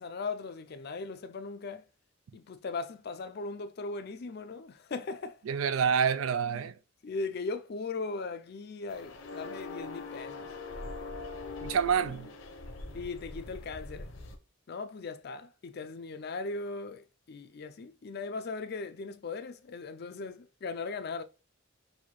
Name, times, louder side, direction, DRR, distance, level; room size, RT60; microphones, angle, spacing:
voice 1, 0.0-1.8 2.3-5.4 6.5-6.7 7.0-10.5 12.9-14.2 14.7-21.2, left 3 dB, 50° left, 0.4 m, -38 dB
voice 2, 5.5-6.8 11.6-12.3, right 7 dB, 85° right, 0.4 m, -27 dB
sound 1, 8.9-14.4, left 3 dB, 65° left, 0.8 m, -42 dB
5.6 x 2.6 x 3.1 m
head